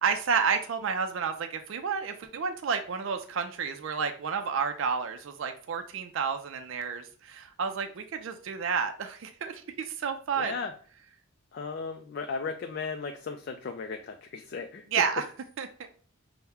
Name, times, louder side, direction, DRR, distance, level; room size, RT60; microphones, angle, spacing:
voice 1, 0.0-9.6 9.9-10.5 14.9-15.2 15.6-15.7, right 6 dB, 60° right, 6 dB, 0.4 m, -30 dB
voice 2, 10.4-10.7 11.5-14.8, left 5 dB, 50° left, 5 dB, 0.3 m, -36 dB
5.6 x 2.1 x 3.4 m, 0.43 s
head